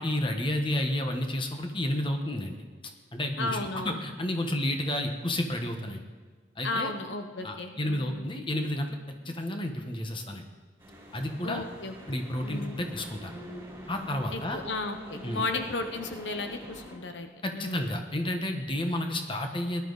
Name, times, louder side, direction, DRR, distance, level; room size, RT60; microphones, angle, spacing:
voice 1, 0.0-2.6 3.1-3.6 3.8-6.0 6.6-6.9 7.4-9.0 9.2-10.4 11.1-11.6 12.1-13.3 13.9-14.6 15.2-15.5 17.4-19.8, left 1 dB, 30° left, 4 dB, 1.3 m, -31 dB
voice 2, 3.4-4.0 6.6-8.3 11.4-11.9 12.4-12.9 14.3-17.3 17.5-18.0, left 3 dB, 80° left, 6 dB, 1.0 m, -34 dB
sound 1, 10.8-17.0, equal, 15° right, 3.4 m, -45 dB
18.0 x 12.0 x 4.1 m, 1.5 s
head